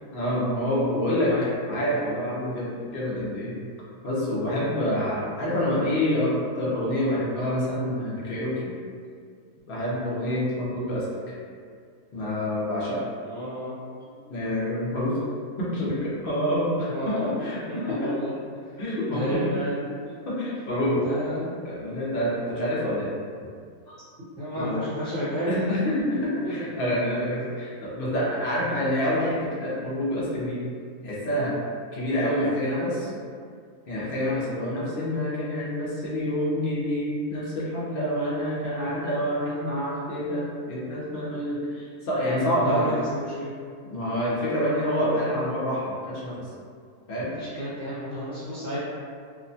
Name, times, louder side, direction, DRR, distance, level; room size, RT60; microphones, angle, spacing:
voice 1, 0.1-1.3 1.7-3.6 4.0-8.7 9.7-11.3 12.1-13.0 14.3-15.2 15.6-18.1 18.8-19.5 20.3-21.0 21.6-23.1 23.9-24.0 24.6-24.8 25.5-30.6 31.0-31.6 31.9-33.1 33.9-42.9 43.9-46.5 47.1-47.3, equal, 55° left, -7 dB, 0.6 m, -27 dB
voice 2, 1.1-1.5 13.2-13.7 16.8-17.3 17.7-18.3 19.1-20.0 20.7-21.5 24.4-25.7 26.4-26.5 42.4-43.5 47.4-48.8, equal, 55° right, -13 dB, 1.0 m, -31 dB
2.8 x 2.1 x 2.6 m, 2.2 s
omnidirectional pair, 1.7 m